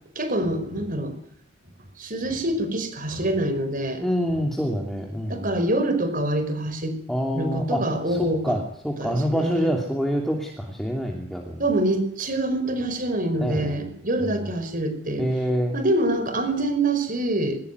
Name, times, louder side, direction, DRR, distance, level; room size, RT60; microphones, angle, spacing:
voice 1, 0.2-1.1 2.0-4.0 5.3-7.0 7.3-8.6 9.0-9.7 11.6-15.3 15.7-17.6, right 1 dB, 40° right, 9 dB, 5.4 m, -25 dB
voice 2, 4.0-5.6 7.1-7.8 8.1-11.6 13.4-13.9 14.2-14.5 15.2-15.8, equal, ahead, 0 dB, 2.9 m, -26 dB
22.5 x 20.0 x 9.6 m, 0.65 s
head